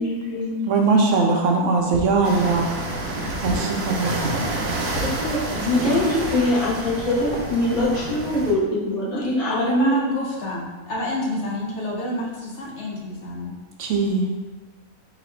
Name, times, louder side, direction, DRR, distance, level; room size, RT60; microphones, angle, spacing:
voice 1, 0.0-0.6 5.0-10.0, left 1 dB, 30° left, -8 dB, 1.1 m, -23 dB
voice 2, 0.7-2.8 3.4-4.3 13.8-14.3, right 3 dB, 70° right, 1 dB, 0.8 m, -20 dB
sound 1, 1.8-2.2 2.5-4.1 4.6-5.6 5.9-6.3 6.8-7.7, equal, 90° left, 1.3 m, -33 dB
sound 2, 2.2-8.5, right 2 dB, 90° right, 1.3 m, -29 dB
voice 3, 9.5-13.6, equal, 60° left, -2 dB, 0.9 m, -28 dB
3.9 x 2.9 x 4.3 m, 1.3 s
omnidirectional pair, 1.4 m